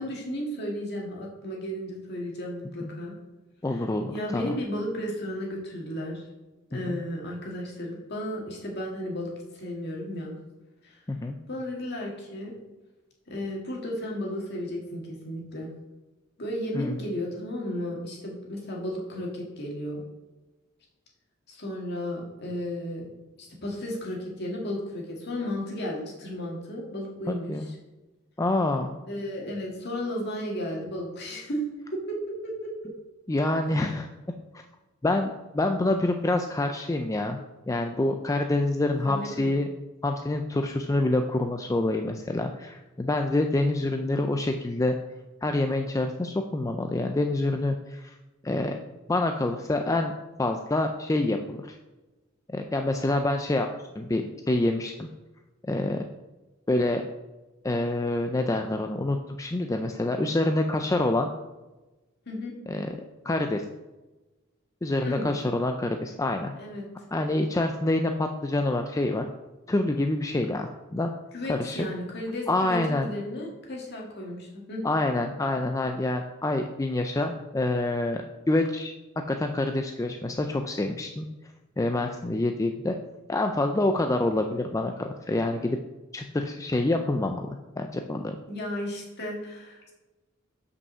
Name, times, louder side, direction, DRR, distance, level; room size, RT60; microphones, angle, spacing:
voice 1, 0.0-3.1 3.7-3.9 4.1-6.2 6.7-10.3 10.8-11.0 11.5-12.6 13.3-15.7 16.4-20.0 21.5-23.1 23.4-27.7 29.1-31.6 31.9-32.7 39.0-39.6 62.3-62.5 65.0-65.3 66.6-66.9 71.3-74.8 88.5-89.9, left 1 dB, 55° left, -2 dB, 2.0 m, -34 dB
voice 2, 3.6-4.6 6.9-7.0 11.1-11.3 16.7-17.0 27.3-27.7 28.4-28.9 33.3-34.1 35.0-37.4 37.7-39.7 40.0-45.0 45.4-48.1 48.4-48.8 49.1-50.1 50.4-51.8 52.5-53.7 54.0-55.1 55.7-56.0 56.7-57.0 57.6-61.3 62.7-62.9 63.2-63.6 64.8-66.5 67.1-69.2 69.7-71.1 71.5-71.8 72.5-73.1 74.8-78.9 79.3-81.3 81.8-83.0 83.3-85.8 86.1-88.4, left 2 dB, 15° left, 4 dB, 0.4 m, -27 dB
5.6 x 5.4 x 6.6 m, 1.1 s
head